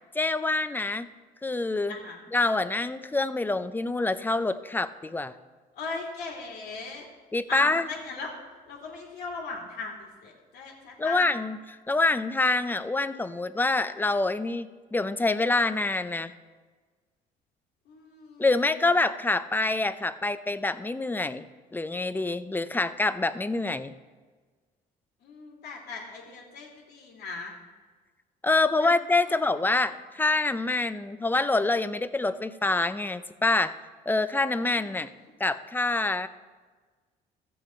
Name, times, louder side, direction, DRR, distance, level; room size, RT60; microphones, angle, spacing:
voice 1, 0.1-1.1 1.4-1.9 2.3-5.3 7.3-7.9 11.0-11.6 11.9-16.3 18.4-21.5 21.7-23.9 28.4-33.8 34.1-35.1 35.4-36.3, left 2 dB, 10° left, 13 dB, 0.5 m, -26 dB
voice 2, 1.9-2.2 5.7-7.1 7.5-8.3 8.7-11.3 17.9-18.7 25.2-27.5 28.8-28.9 29.3-29.4 34.7-35.1, left 4 dB, 75° left, -2 dB, 2.4 m, -38 dB
14.5 x 7.8 x 4.3 m, 1.4 s
cardioid pair, 110°, 17 cm